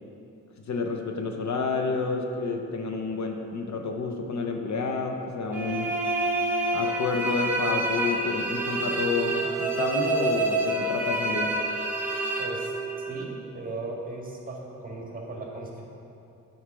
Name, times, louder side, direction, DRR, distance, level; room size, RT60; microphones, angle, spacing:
voice 1, 0.7-5.9 6.7-11.5, left 4 dB, 55° left, 3 dB, 1.0 m, -29 dB
sound 1, 5.5-13.3, right 2 dB, 5° right, 1.2 m, -28 dB
voice 2, 12.4-15.8, right 2 dB, 25° right, -2 dB, 1.9 m, -37 dB
8.4 x 4.5 x 6.2 m, 2.7 s
cardioid pair, 80°, 33 cm